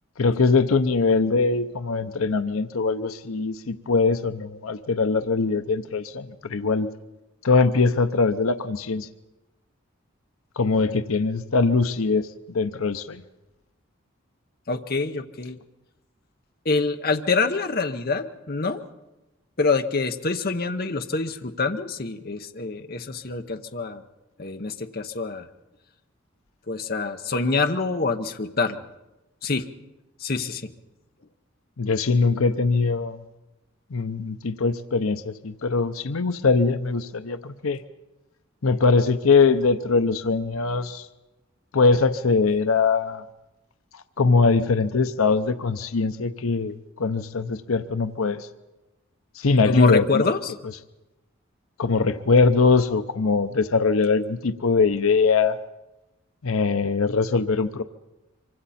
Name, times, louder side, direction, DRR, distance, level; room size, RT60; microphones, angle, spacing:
voice 1, 0.2-6.9 7.4-9.1 10.6-13.2 31.8-33.2 33.9-37.8 38.6-41.1 41.7-43.2 43.9-48.5 49.4-50.3 51.8-55.6 56.4-57.8, left 4 dB, 80° left, 10 dB, 0.7 m, -22 dB
voice 2, 14.7-15.6 16.6-18.8 19.6-24.0 24.4-25.5 26.7-28.8 29.4-29.7 30.2-30.7 49.7-50.5, left 3 dB, 45° left, 6 dB, 0.9 m, -26 dB
25.5 x 24.5 x 4.3 m, 1.0 s
head